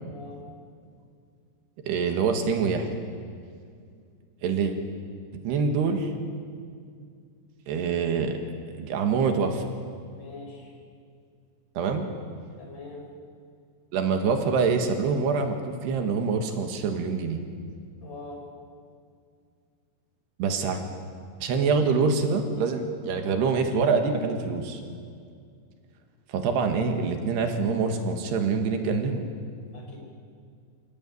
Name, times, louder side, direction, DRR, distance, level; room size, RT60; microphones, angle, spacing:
voice 1, 0.1-0.4 10.2-10.7 12.6-13.0 18.0-18.4 29.7-30.0, left 4 dB, 50° left, 1 dB, 6.2 m, -42 dB
voice 2, 1.9-3.0 4.4-4.8 5.4-6.1 7.7-8.4 8.8-9.7 11.8-12.1 13.9-17.4 20.4-20.8 21.4-24.8 26.3-29.2, right 5 dB, 80° right, 5 dB, 3.8 m, -25 dB
28.5 x 16.5 x 9.2 m, 2.3 s
omnidirectional pair, 4.7 m